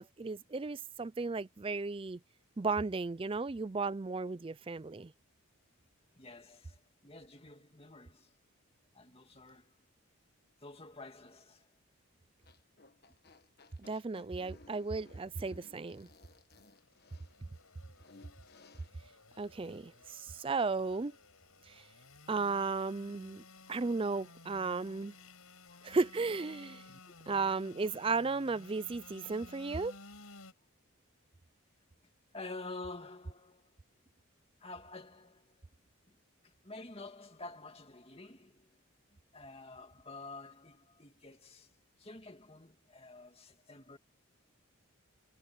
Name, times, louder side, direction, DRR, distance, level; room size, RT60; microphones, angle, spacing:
voice 1, 0.0-2.2 2.6-5.1 13.8-16.1 19.4-21.1 21.7-21.9 22.3-23.4 23.7-25.1 25.8-26.8 27.3-29.9, right 4 dB, 25° right, 0.4 m, -35 dB
voice 2, 6.2-8.4 8.9-9.8 10.6-11.7 21.7-21.9 24.9-25.0 25.7-25.9 26.9-27.4 28.3-28.4 32.3-33.8 34.6-35.7 36.1-36.2 36.4-38.8 39.3-41.7 42.0-44.0, left 2 dB, 25° left, 2.3 m, -49 dB
sound 1, 12.4-18.9, left 3 dB, 45° left, 1.5 m, -60 dB
Engine / Sawing, 16.7-30.5, left 3 dB, 75° left, 7.4 m, -56 dB
head